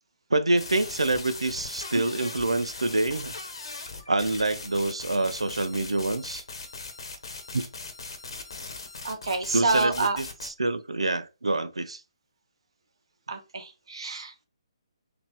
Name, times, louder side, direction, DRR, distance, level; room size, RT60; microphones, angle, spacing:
voice 1, 0.3-3.3 4.1-6.4 7.5-7.6 9.5-12.0, right 2 dB, 80° right, 0.6 m, -26 dB
sound 1, 0.6-10.5, left 3 dB, 60° left, 1.1 m, -40 dB
voice 2, 9.0-10.2 13.3-14.5, right 3 dB, 65° right, 1.3 m, -28 dB
4.0 x 2.7 x 3.6 m
figure-of-eight pair, 140°, 3 cm